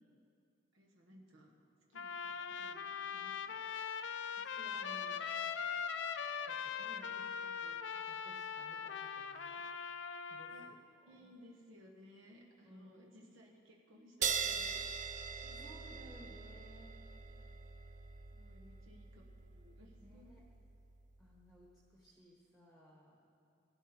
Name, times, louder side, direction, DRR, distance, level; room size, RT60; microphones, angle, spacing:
voice 1, 0.7-1.5 1.9-3.6 10.5-10.7 11.0-15.7 17.3-17.6 18.3-20.5, equal, 75° right, -1 dB, 1.3 m, -61 dB
Trumpet, 2.0-10.7, left 7 dB, 60° left, 0.5 m, -41 dB
voice 2, 4.3-5.3 6.4-9.7 10.3-10.7 11.2-11.3 12.6-13.1 15.5-17.0 20.0-20.4 21.2-23.2, equal, 5° right, -3 dB, 1.2 m, -59 dB
sound 1, 14.2-21.2, right 6 dB, 35° right, 0.5 m, -42 dB
17.0 x 12.0 x 4.4 m, 2.6 s
head